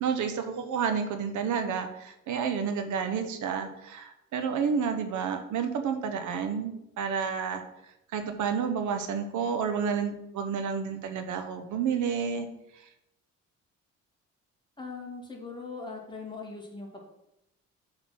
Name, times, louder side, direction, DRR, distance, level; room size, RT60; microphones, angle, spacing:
voice 1, 0.0-7.6 8.1-12.5, right 6 dB, 75° right, 7 dB, 1.0 m, -30 dB
voice 2, 14.8-17.0, left 4 dB, 15° left, -1 dB, 2.5 m, -40 dB
7.5 x 4.0 x 6.2 m, 0.84 s
cardioid pair, 90°, 30 cm